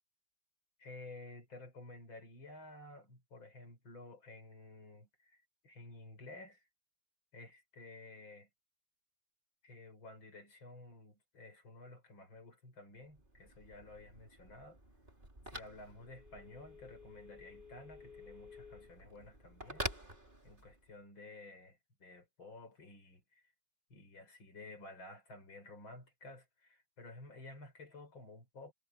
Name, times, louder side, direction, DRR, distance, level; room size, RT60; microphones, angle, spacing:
voice 1, 0.8-6.7 7.3-8.5 9.6-14.8 15.4-19.9 20.4-23.5 23.9-28.7, left 2 dB, 75° left, 6.6 m, -53 dB
Telephone, 13.0-20.9, equal, 25° right, 4.6 m, -48 dB
omnidirectional pair, 2.2 m